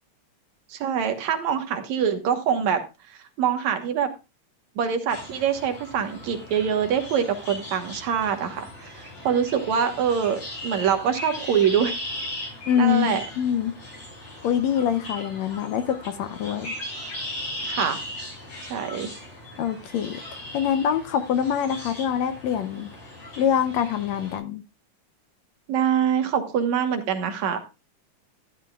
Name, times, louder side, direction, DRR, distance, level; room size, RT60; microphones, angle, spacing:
voice 1, 0.7-2.8 3.1-4.1 4.8-12.0 12.8-13.2 17.6-18.0 18.7-19.1 25.7-27.6, right 8 dB, 70° right, 6 dB, 2.5 m, -24 dB
sound 1, 5.1-24.4, left 1 dB, 55° left, 7.3 m, -38 dB
voice 2, 12.7-13.8 14.4-16.7 19.6-20.2 20.5-22.9 23.4-24.6, left 9 dB, 70° left, 10 dB, 1.9 m, -24 dB
13.0 x 11.0 x 2.4 m, 0.27 s
omnidirectional pair, 3.4 m